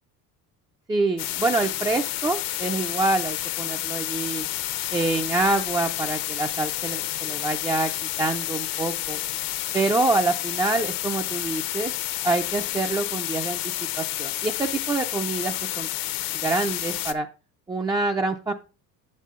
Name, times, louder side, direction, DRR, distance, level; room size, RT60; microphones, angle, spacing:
voice 1, 0.9-4.5 4.9-7.9 8.2-9.2 9.7-11.9 12.2-13.6 14.0-15.9 16.4-17.3 17.7-18.5, right 2 dB, 10° right, 4 dB, 0.3 m, -26 dB
sound 1, 1.2-17.1, left 15 dB, 70° left, 0.8 m, -30 dB
8.3 x 7.5 x 3.6 m, 0.34 s
cardioid pair, 150°, 35 cm